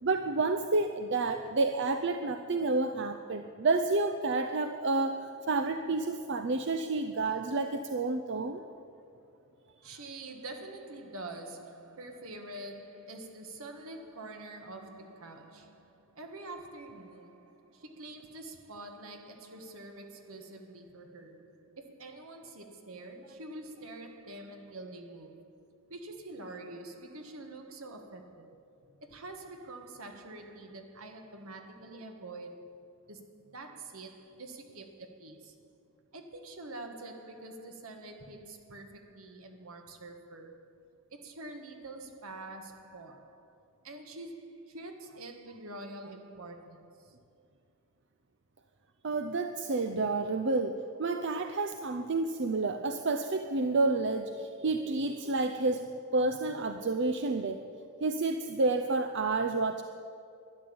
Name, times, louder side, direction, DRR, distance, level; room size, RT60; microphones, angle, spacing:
voice 1, 0.0-8.6 49.0-55.9 56.1-57.6 58.0-59.8, right 3 dB, 55° right, 0.6 m, -30 dB
voice 2, 9.8-28.5 29.0-32.8 33.1-35.5 36.1-40.7 41.1-47.2, right 2 dB, 75° right, 1.6 m, -46 dB
12.5 x 10.5 x 8.6 m
head